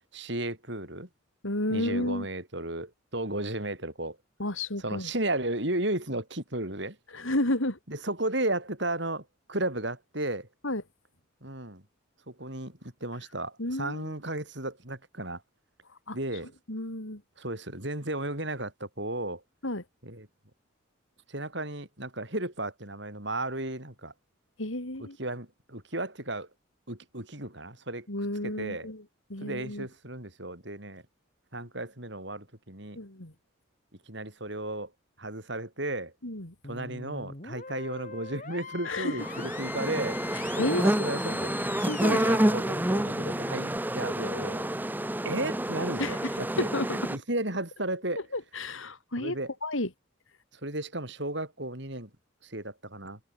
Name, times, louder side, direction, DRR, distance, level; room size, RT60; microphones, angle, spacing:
voice 1, 0.1-1.1 1.7-4.2 4.8-7.0 7.9-10.5 11.4-11.8 12.3-15.4 16.1-16.5 17.4-19.4 20.0-20.3 21.3-24.1 25.2-26.5 26.9-28.1 28.4-28.9 29.4-31.0 31.5-33.0 34.1-34.9 35.2-36.1 36.6-40.2 40.6-41.6 42.0-44.7 45.2-46.7 47.1-48.2 49.2-49.5 50.6-52.1 52.4-53.2, right 1 dB, 55° right, 6.5 m, -34 dB
voice 2, 1.4-2.3 4.4-5.1 7.1-7.8 10.6-10.8 13.6-14.1 16.1-16.2 16.7-17.2 19.6-19.8 24.6-25.2 28.1-29.0 29.3-29.9 32.9-33.3 36.2-36.5 38.8-39.3 40.3-40.8 41.9-42.2 46.0-46.3 46.7-46.9 48.3-49.4 49.6-49.9, left 1 dB, 75° left, 4.3 m, -31 dB
sound 1, 36.6-43.8, left 5 dB, 40° left, 3.7 m, -42 dB
sound 2, 39.2-47.2, right 1 dB, 10° right, 0.8 m, -29 dB
head